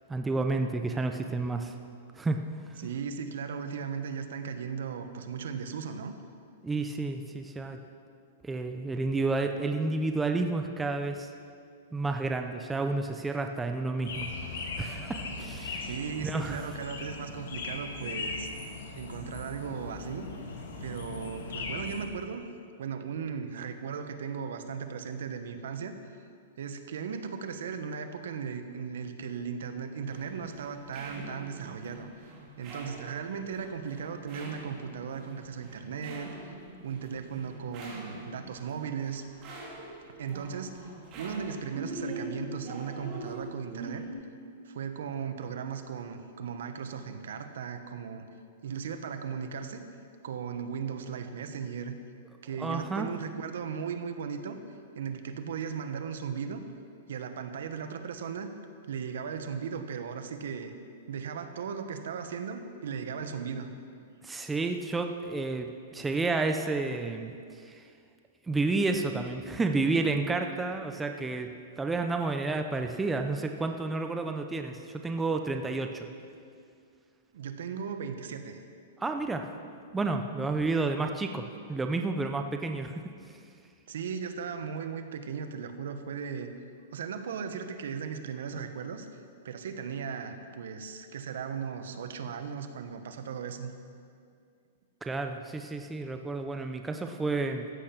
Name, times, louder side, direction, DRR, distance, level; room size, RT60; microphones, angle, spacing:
voice 1, 0.1-1.7 2.2-2.4 2.8-2.9 6.6-7.8 8.4-11.3 11.9-14.3 14.8-15.9 16.2-16.7 52.6-53.1 64.2-67.9 68.4-76.1 79.0-79.5 79.9-81.4 81.7-83.4 95.0-97.7, right 3 dB, 10° right, 5 dB, 0.6 m, -31 dB
voice 2, 2.8-6.1 15.8-18.5 18.9-20.3 20.8-22.5 22.8-26.0 26.6-32.1 32.6-36.5 36.8-39.2 40.2-40.9 41.2-44.0 44.6-48.2 48.6-49.8 50.2-52.0 52.4-54.6 54.9-56.6 57.1-58.5 58.9-60.7 61.1-63.7 77.3-78.6 83.9-86.5 86.9-89.1 89.4-93.7, right 6 dB, 75° right, 8 dB, 1.2 m, -37 dB
sound 1, 14.1-22.1, left 3 dB, 80° left, 2.3 m, -39 dB
sound 2, 30.1-44.1, right 2 dB, 30° right, 3.4 m, -43 dB
14.5 x 8.7 x 6.0 m, 2.3 s
hypercardioid pair, 155°, 0 cm